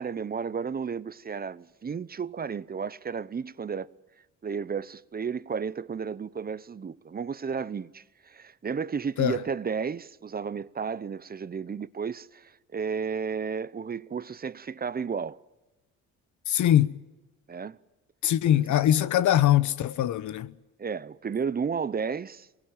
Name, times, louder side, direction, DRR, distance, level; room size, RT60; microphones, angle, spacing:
voice 1, 0.0-3.9 4.4-15.4 17.5-17.8 18.5-18.6 20.8-22.5, right 6 dB, 30° right, 0.8 m, -33 dB
voice 2, 16.5-16.9 18.2-20.5, left 12 dB, 75° left, 1.0 m, -22 dB
23.5 x 19.5 x 9.0 m
cardioid pair, 90°, 30 cm